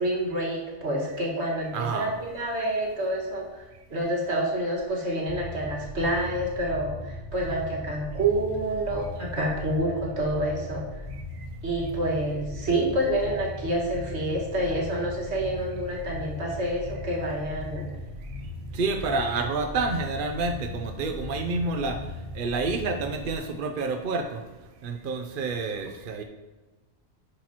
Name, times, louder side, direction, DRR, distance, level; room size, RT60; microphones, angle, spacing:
voice 1, 0.0-3.6 3.9-10.9 11.6-17.9, right 1 dB, 75° right, -2 dB, 2.0 m, -28 dB
voice 2, 1.7-2.1 18.7-22.0 22.3-24.4 24.8-26.2, right 3 dB, 55° right, 5 dB, 0.8 m, -28 dB
sound 1, 5.3-23.4, left 2 dB, 70° left, 1.9 m, -38 dB
10.0 x 6.5 x 2.9 m, 1.2 s
omnidirectional pair, 1.1 m